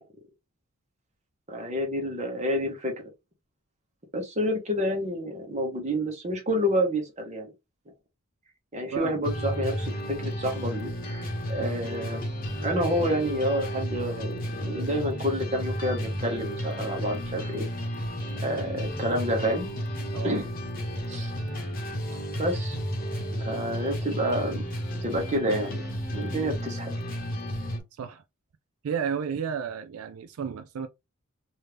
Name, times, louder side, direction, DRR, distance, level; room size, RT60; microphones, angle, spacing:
voice 1, 1.5-2.9 4.1-7.5 8.7-12.3 12.6-17.6 18.4-19.7 20.2-20.5 21.1-21.3 22.4-22.8 23.3-24.6 25.0-25.8 26.1-26.9, equal, 30° right, 1.2 m, -29 dB
sound 1, 9.2-27.8, equal, 40° left, 1.1 m, -32 dB
voice 2, 20.1-20.4 23.2-23.3 27.9-28.2 28.8-30.9, right 7 dB, 75° right, 0.4 m, -33 dB
3.2 x 2.7 x 3.3 m
head